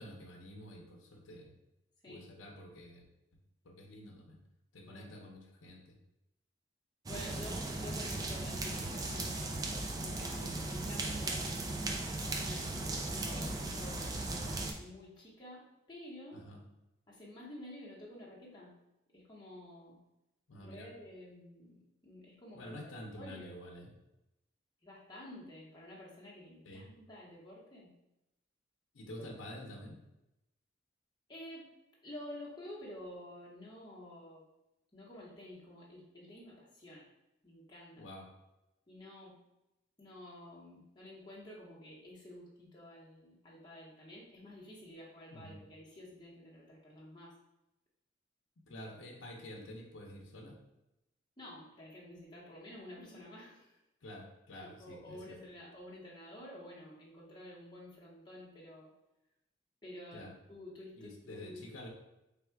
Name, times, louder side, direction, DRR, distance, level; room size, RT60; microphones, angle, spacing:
voice 1, 0.0-1.5 2.1-3.0 3.6-4.4 4.7-6.0 10.3-10.6 13.2-13.5 16.3-16.6 20.5-20.9 22.5-23.9 26.6-26.9 28.9-30.0 38.0-38.3 45.3-45.6 48.7-50.6 54.0-55.4 60.1-60.3 61.0-61.9, left 1 dB, 85° left, 1 dB, 0.7 m, -49 dB
voice 2, 7.0-9.7 10.0-16.4 17.1-18.7 19.1-20.0 20.6-23.6 24.8-27.9 29.2-29.3 31.3-31.7 32.0-34.4 34.9-37.1 37.4-38.1 38.9-39.4 40.0-47.3 51.4-53.8 54.5-58.9 59.8-61.7, left 1 dB, 20° left, -6 dB, 1.0 m, -50 dB
sound 1, 7.1-14.7, right 2 dB, 20° right, 0.3 m, -37 dB
3.5 x 2.4 x 4.5 m, 0.91 s
head